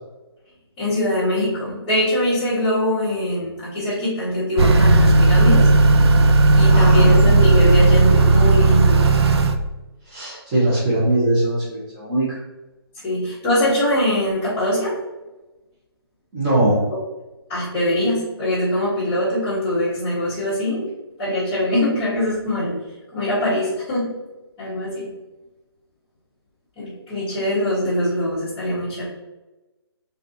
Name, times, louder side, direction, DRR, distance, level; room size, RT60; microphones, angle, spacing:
voice 1, 0.8-5.7 6.5-9.0 13.0-15.0 17.5-20.9 21.2-22.7 23.1-24.1 24.6-25.1 26.8-29.0, left 1 dB, 15° left, -13 dB, 1.3 m, -22 dB
Motor vehicle (road) / Accelerating revving vroom, 4.6-9.6, right 2 dB, 75° right, 0.5 m, -14 dB
voice 2, 6.6-7.1 10.1-12.2 16.3-16.8, right 1 dB, 20° right, -11 dB, 1.1 m, -20 dB
4.0 x 3.2 x 2.7 m, 1.1 s
hypercardioid pair, 165°, 14 cm